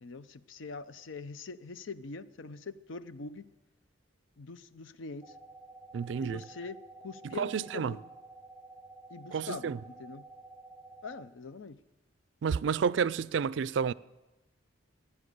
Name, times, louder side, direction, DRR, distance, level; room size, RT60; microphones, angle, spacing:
voice 1, 0.0-3.5 4.4-5.3 6.2-6.8 7.0-8.0 9.1-10.3 11.0-11.8, left 4 dB, 80° left, 0.6 m, -43 dB
sound 1, 5.2-11.3, right 3 dB, 10° right, 0.7 m, -51 dB
voice 2, 5.9-6.4 7.3-8.0 9.3-9.8 12.4-13.9, right 6 dB, 65° right, 0.4 m, -30 dB
16.0 x 9.9 x 6.6 m
head